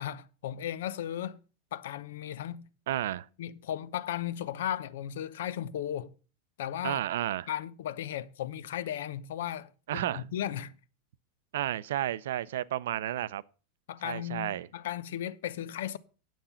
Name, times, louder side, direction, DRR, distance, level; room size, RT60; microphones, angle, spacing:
voice 1, 0.0-1.4 1.7-2.6 3.4-6.1 6.6-7.0 7.5-10.7 13.9-16.0, left 11 dB, 90° left, 0.8 m, -36 dB
voice 2, 2.9-3.3 6.8-7.5 9.9-10.2 11.5-13.4 14.0-14.7, right 12 dB, 90° right, 0.5 m, -32 dB
9.2 x 8.5 x 5.7 m
supercardioid pair, 175°, 0 cm